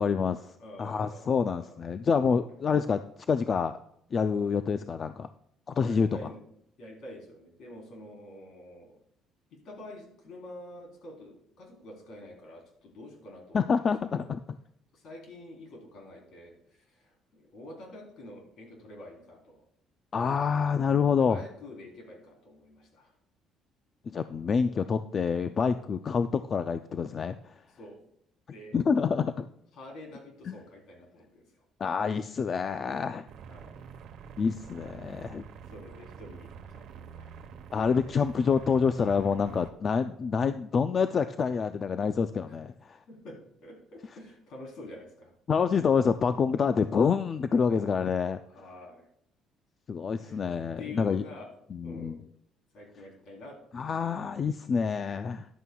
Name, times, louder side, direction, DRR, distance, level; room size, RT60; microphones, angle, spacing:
voice 1, 0.0-0.5 0.8-3.0 3.3-3.7 4.1-5.3 5.7-6.1 13.5-14.4 20.1-21.4 24.1-27.4 28.7-29.5 30.5-30.6 31.8-33.2 34.4-35.4 37.7-43.0 45.5-48.4 49.9-51.2 51.7-52.2 53.7-55.5, left 6 dB, 35° left, 10 dB, 0.3 m, -27 dB
voice 2, 0.6-1.8 2.1-2.5 5.8-6.4 6.8-9.0 9.6-14.3 14.9-19.7 21.1-23.1 27.7-28.0 28.5-28.8 29.7-31.5 33.5-33.8 35.7-37.3 42.5-42.6 43.1-45.3 48.5-49.1 50.2-50.4 50.8-51.5 51.8-52.2 52.7-54.0, left 1 dB, 60° left, 0 dB, 3.5 m, -47 dB
sound 1, 33.3-39.7, right 7 dB, 60° right, 1.0 m, -46 dB
14.0 x 11.0 x 2.3 m, 0.72 s
cardioid pair, 155°, 0 cm